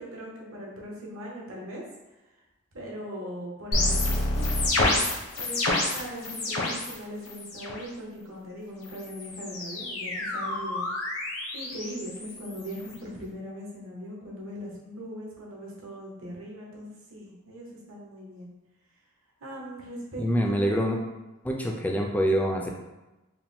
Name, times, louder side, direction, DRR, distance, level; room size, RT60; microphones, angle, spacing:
voice 1, 0.0-1.8 2.7-4.5 5.4-10.9 11.5-18.5 19.4-20.9, equal, 70° right, -3 dB, 1.1 m, -40 dB
sound 1, 3.7-6.9 7.2-7.8 8.8-13.0, left 2 dB, 85° left, 0.9 m, -29 dB
voice 2, 20.2-21.0 21.4-22.7, equal, 5° left, 1 dB, 0.3 m, -25 dB
4.5 x 2.2 x 3.6 m, 1.0 s
head